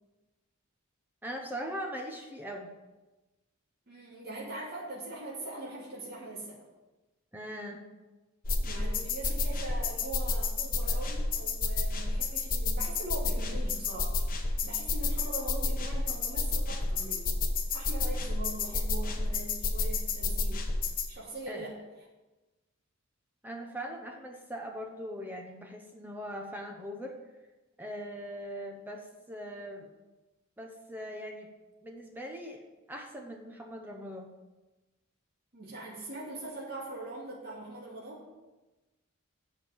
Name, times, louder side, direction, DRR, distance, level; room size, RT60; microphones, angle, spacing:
voice 1, 1.2-2.7 7.3-7.8 21.5-21.7 23.4-27.1 27.8-29.9 30.6-31.5 31.8-32.6 32.9-34.3, equal, 10° right, 1 dB, 0.9 m, -40 dB
voice 2, 3.9-6.6 8.6-17.4 17.7-20.7 21.1-21.8 35.5-38.2, right 2 dB, 50° right, -6 dB, 2.7 m, -42 dB
sound 1, 8.4-21.1, left 3 dB, 45° left, 1.1 m, -30 dB
8.0 x 6.5 x 7.2 m, 1.1 s
head